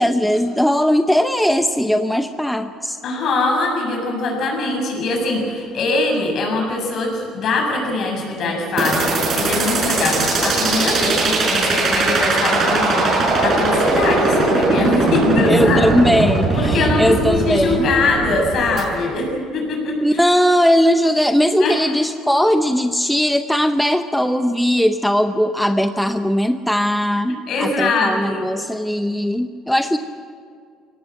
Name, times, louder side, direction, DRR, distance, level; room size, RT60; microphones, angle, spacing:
voice 1, 0.0-3.0 15.5-17.9 20.0-30.0, equal, ahead, 8 dB, 0.7 m, -18 dB
voice 2, 3.0-15.9 16.5-20.2 21.6-21.8 27.5-28.5, left 3 dB, 55° left, 1 dB, 7.2 m, -22 dB
sound 1, 8.8-18.8, right 3 dB, 45° right, 6.6 m, -19 dB
23.5 x 18.0 x 7.8 m, 2.2 s
cardioid pair, 120°, 0 cm